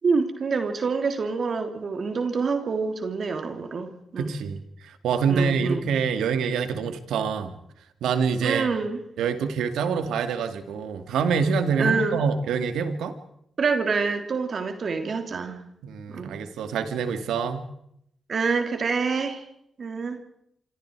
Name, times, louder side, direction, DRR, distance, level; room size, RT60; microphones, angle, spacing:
voice 1, 0.0-4.3 5.3-5.9 8.4-9.0 11.8-12.2 13.6-15.6 16.1-16.3 18.3-19.4 19.8-20.2, right 4 dB, 60° right, 6 dB, 3.2 m, -26 dB
voice 2, 4.2-7.6 8.0-8.7 9.2-13.1 15.8-17.7, right 6 dB, 90° right, 9 dB, 2.2 m, -26 dB
27.0 x 26.0 x 4.8 m, 0.72 s
supercardioid pair, 50°, 0 cm